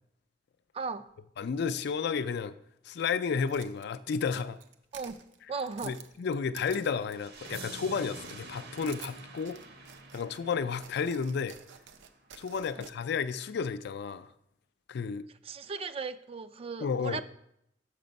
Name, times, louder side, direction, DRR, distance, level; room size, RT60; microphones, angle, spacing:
voice 1, 0.7-1.1 4.9-5.2 5.5-5.9 15.4-17.2, right 4 dB, 30° right, 12 dB, 0.3 m, -36 dB
voice 2, 1.4-2.6 2.8-4.6 5.8-9.6 10.1-11.6 12.4-14.3 14.9-15.2 16.8-17.2, left 5 dB, 60° left, 13 dB, 0.4 m, -32 dB
sound 1, 3.5-7.9 8.1-10.4 10.8-12.9, right 8 dB, 80° right, 0.6 m, -51 dB
sound 2, 7.1-12.1, right 2 dB, 60° right, 1.0 m, -47 dB
6.7 x 6.0 x 5.2 m, 0.76 s
head